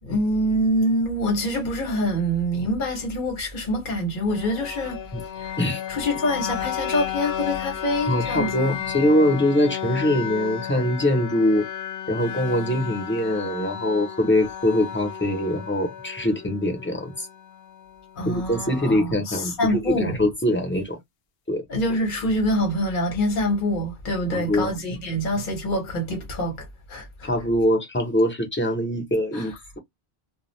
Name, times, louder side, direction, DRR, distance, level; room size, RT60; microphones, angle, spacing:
voice 1, 0.0-5.0 5.4-5.6 5.9-8.5 18.2-20.2 21.7-27.3 29.3-29.6, equal, 50° left, 1.0 m, -25 dB
sound 1, 4.3-18.2, left 9 dB, 70° left, 0.8 m, -33 dB
voice 2, 8.1-11.7 12.1-17.3 18.3-21.0 21.5-21.6 24.3-24.7 27.2-29.8, left 1 dB, 10° left, 0.8 m, -23 dB
2.3 x 2.2 x 3.1 m
omnidirectional pair, 1.1 m